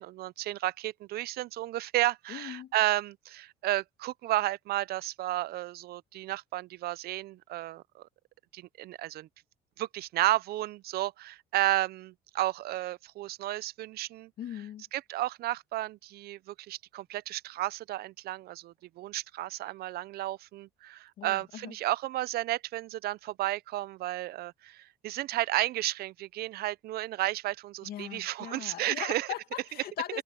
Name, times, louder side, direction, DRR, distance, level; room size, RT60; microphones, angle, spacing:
voice 1, 0.0-7.8 8.5-9.3 9.8-14.3 14.9-29.3, right 16 dB, 70° right, 0.5 m, -32 dB
voice 2, 2.3-2.7 14.4-14.8 21.2-21.8 27.8-30.2, left 12 dB, 65° left, 2.3 m, -39 dB
cardioid pair, 110°, 17 cm